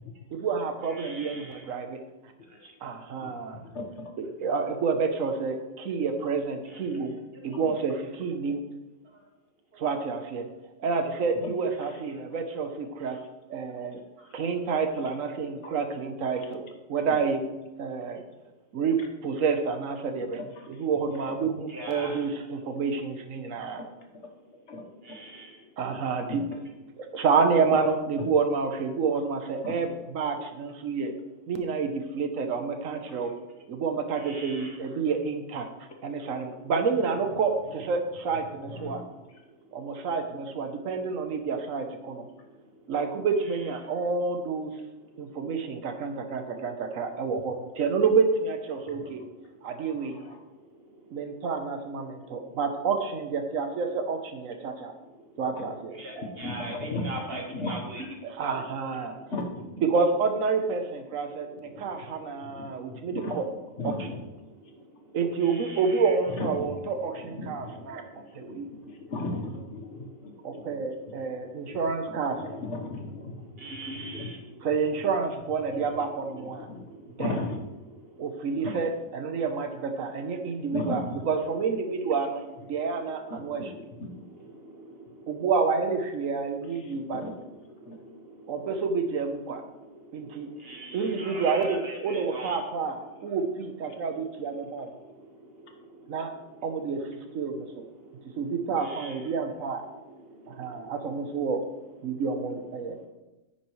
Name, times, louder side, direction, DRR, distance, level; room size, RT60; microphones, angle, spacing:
voice 1, 0.3-2.0 2.8-3.6 4.2-7.9 8.2-8.6 9.8-10.5 10.8-13.2 13.5-14.0 14.3-17.4 17.8-18.2 18.7-20.4 20.8-23.8 25.8-26.4 27.1-29.9 30.1-31.1 31.5-33.3 33.7-35.7 36.0-39.0 39.7-42.3 42.9-44.7 45.2-49.2 49.6-50.2 51.1-54.9 55.4-56.0 58.2-59.2 59.9-63.4 63.8-63.9 65.1-68.0 68.3-68.7 70.4-72.6 74.6-76.7 77.2-77.3 78.2-81.0 81.3-83.6 85.3-87.2 88.5-89.6 90.1-90.5 90.9-94.9 96.1-96.3 96.6-97.8 98.4-99.8 100.5-101.6 102.0-103.0, right 5 dB, 85° right, 6 dB, 1.3 m, -29 dB
voice 2, 0.9-1.6 6.7-6.8 21.7-22.2 25.1-25.5 34.2-34.8 55.9-58.0 65.4-65.8 73.6-74.4 83.0-83.1 84.8-84.9 90.6-92.6 98.8-99.4, right 1 dB, 45° right, 1 dB, 1.8 m, -40 dB
voice 3, 3.2-4.1 7.5-7.7 11.4-11.5 11.8-12.0 13.0-13.2 14.3-14.4 15.6-15.7 16.4-16.5 17.1-17.2 19.0-19.1 20.4-20.9 21.2-21.3 23.4-23.9 24.7-25.2 26.3-26.4 27.8-27.9 28.2-28.3 29.6-29.8 33.1-33.3 37.6-37.9 38.3-39.4 48.8-49.3 49.7-50.4 55.5-55.6 56.4-57.1 57.5-57.8 59.3-59.6 61.7-61.8 62.3-63.4 63.8-64.2 66.3-66.7 67.1-68.0 68.4-71.1 71.7-74.3 75.8-76.8 77.2-77.6 78.6-78.8 80.7-81.2 83.3-83.7 84.0-84.1 86.7-87.3 87.8-88.0, left 2 dB, 60° left, 3 dB, 1.5 m, -37 dB
10.0 x 8.6 x 3.2 m, 1.0 s
omnidirectional pair, 1.4 m